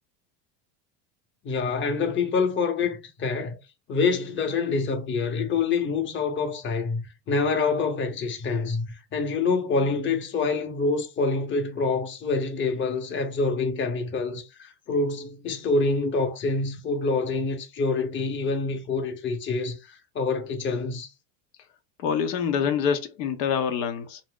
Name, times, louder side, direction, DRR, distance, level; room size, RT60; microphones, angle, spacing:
voice 1, 1.4-3.6 3.9-21.1, left 4 dB, 25° left, 0.7 m, -26 dB
voice 2, 22.0-24.2, left 7 dB, 80° left, 0.7 m, -26 dB
2.5 x 2.0 x 3.6 m
hypercardioid pair, 90°, 48 cm